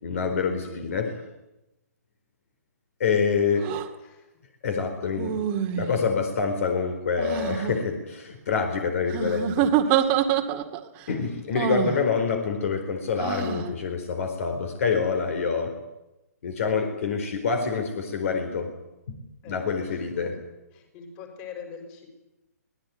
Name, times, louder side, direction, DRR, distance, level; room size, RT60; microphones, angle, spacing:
voice 1, 0.0-1.1 3.0-3.7 4.6-5.4 5.7-10.0 11.1-15.7 16.4-18.7 19.1-19.2 19.4-20.4, left 5 dB, 55° left, 6 dB, 4.3 m, -26 dB
voice 2, 0.6-0.9 3.1-3.4 4.0-4.3 10.0-10.6 19.4-20.4 20.7-22.1, left 6 dB, 25° left, 5 dB, 5.8 m, -44 dB
sound 1, 3.6-3.9 5.2-6.1 7.2-7.7 9.1-10.8 11.5-12.0 13.2-13.7, right 10 dB, 25° right, 2.0 m, -26 dB
25.0 x 19.5 x 9.6 m, 0.96 s
hypercardioid pair, 155°, 9 cm